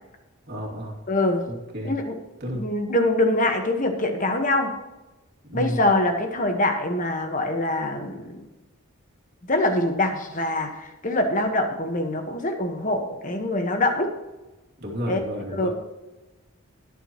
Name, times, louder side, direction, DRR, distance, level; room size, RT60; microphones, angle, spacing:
voice 1, 0.5-1.0 1.5-2.0 2.4-2.7 5.4-5.8 14.8-15.7, equal, 45° right, -2 dB, 2.7 m, -31 dB
voice 2, 1.1-1.4 1.8-2.1 2.5-4.7 5.5-8.4 9.5-14.1 15.1-15.2 15.5-15.7, left 1 dB, 35° left, 5 dB, 1.4 m, -24 dB
20.5 x 7.4 x 3.1 m, 1.1 s
head